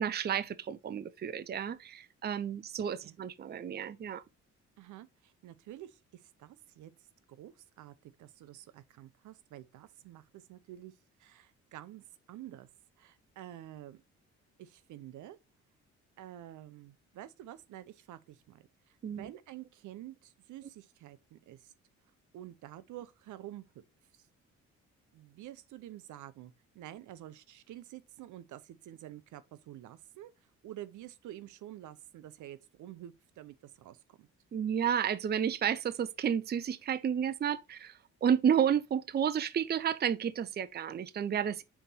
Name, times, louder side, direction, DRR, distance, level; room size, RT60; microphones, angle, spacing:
voice 1, 0.0-4.2 19.0-19.3 34.5-41.6, right 8 dB, 35° right, 0.5 m, -31 dB
voice 2, 4.8-6.9 7.3-10.9 11.2-12.7 13.0-14.0 14.6-15.4 16.2-21.7 22.3-23.8 25.1-30.3 30.6-34.3, right 13 dB, 80° right, 0.7 m, -49 dB
5.8 x 4.1 x 4.0 m
cardioid pair, 90°, 30 cm